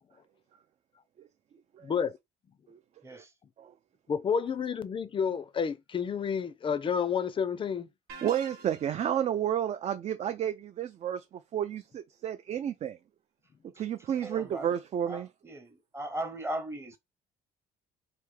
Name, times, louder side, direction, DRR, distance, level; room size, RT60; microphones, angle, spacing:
voice 1, 1.8-2.2 4.1-7.9, left 7 dB, 30° left, 0.4 m, -30 dB
sound 1, 8.1-9.1, right 4 dB, 80° right, 0.7 m, -46 dB
voice 2, 8.2-13.0 13.8-15.3, right 10 dB, 40° right, 0.4 m, -31 dB
voice 3, 14.2-14.7 15.1-17.0, right 1 dB, 15° right, 0.8 m, -38 dB
3.4 x 2.7 x 3.2 m
cardioid pair, 110°, 17 cm